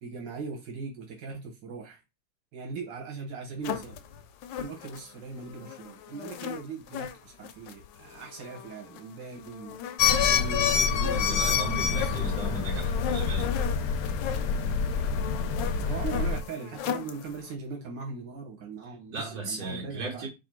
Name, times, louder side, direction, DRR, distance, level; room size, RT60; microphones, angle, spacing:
voice 1, 0.0-2.0 2.5-4.0 4.6-9.8 10.1-12.6 15.8-20.3, right 4 dB, 85° right, 1.8 m, -40 dB
sound 1, 3.6-17.6, left 9 dB, 90° left, 1.3 m, -38 dB
sound 2, 10.0-16.4, left 6 dB, 70° left, 0.9 m, -26 dB
voice 2, 11.2-13.5 19.1-20.3, right 3 dB, 55° right, 2.1 m, -36 dB
4.2 x 2.5 x 4.4 m
omnidirectional pair, 1.9 m